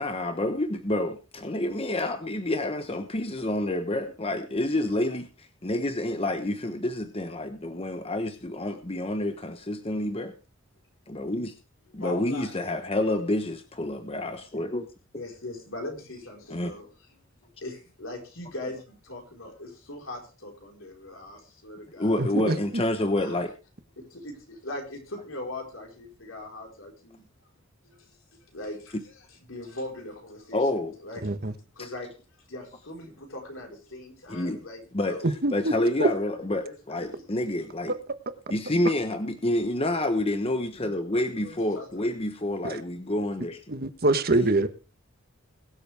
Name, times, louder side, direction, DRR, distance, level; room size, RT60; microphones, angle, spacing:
voice 1, 0.0-10.3 11.1-11.5 11.9-14.9 16.5-16.7 22.0-23.5 30.5-31.0 31.8-31.9 34.3-34.6 34.9-35.2 35.5-37.9 38.5-43.6, left 1 dB, 30° left, 1.1 m, -28 dB
voice 2, 12.0-12.6 15.1-16.9 17.6-22.2 23.2-23.4 24.0-27.2 27.8-28.1 28.5-31.2 31.8-32.1 32.5-35.3 36.6-37.2 41.4-41.8, left 1 dB, 70° left, 4.7 m, -40 dB
voice 3, 22.2-22.8 31.2-31.5 35.2-35.7 36.0-36.1 42.6-42.8 43.7-44.7, right 2 dB, 50° right, 1.2 m, -24 dB
22.0 x 7.8 x 3.5 m
head